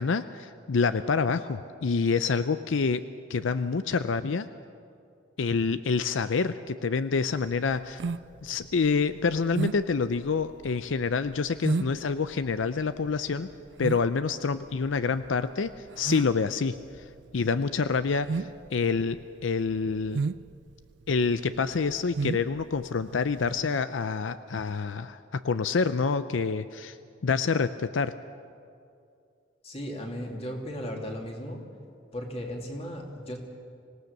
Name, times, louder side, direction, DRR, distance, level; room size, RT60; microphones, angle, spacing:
voice 1, 0.0-3.0 3.3-4.5 5.4-8.0 8.4-13.5 13.8-17.0 17.3-20.2 21.1-27.0 27.2-28.1, left 5 dB, 80° left, 12 dB, 0.5 m, -27 dB
sound 1, 7.4-23.7, right 4 dB, 65° right, 0.4 m, -35 dB
voice 2, 29.6-31.6 32.1-33.4, equal, 30° left, 1 dB, 2.5 m, -36 dB
25.5 x 18.0 x 6.6 m, 2.4 s
head